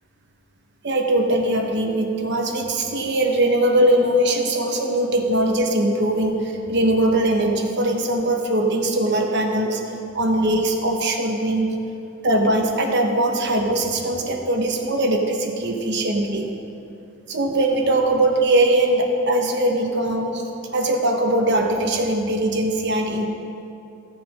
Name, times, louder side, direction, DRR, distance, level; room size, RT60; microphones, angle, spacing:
voice 1, 0.8-9.8 10.1-11.8 12.2-16.5 17.3-20.4 20.7-23.3, right 1 dB, 55° right, 2 dB, 1.2 m, -21 dB
14.0 x 6.8 x 5.1 m, 2.6 s
head